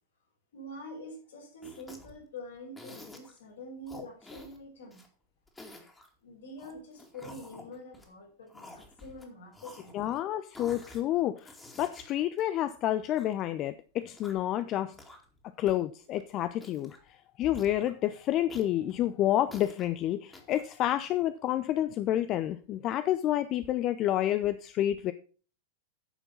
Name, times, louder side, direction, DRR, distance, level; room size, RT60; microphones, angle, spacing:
voice 1, 0.5-5.0 6.2-10.1, left 1 dB, 65° left, 4.7 m, -46 dB
sound 1, 1.6-2.2 2.8-3.4 3.9-5.1 5.5-6.1 6.6-8.1 8.5-9.3 9.5-10.2 10.5-11.0 11.4-13.3 14.0-14.5 14.9-15.4 15.7-15.8 16.1-16.2 16.6-17.1 17.5-17.9 18.5-19.9 20.3-20.6, left 1 dB, 10° left, 2.3 m, -50 dB
voice 2, 9.9-14.9 15.6-16.9 17.4-25.1, left 12 dB, 35° left, 0.5 m, -29 dB
9.9 x 6.8 x 5.5 m
figure-of-eight pair, 90°, 0 cm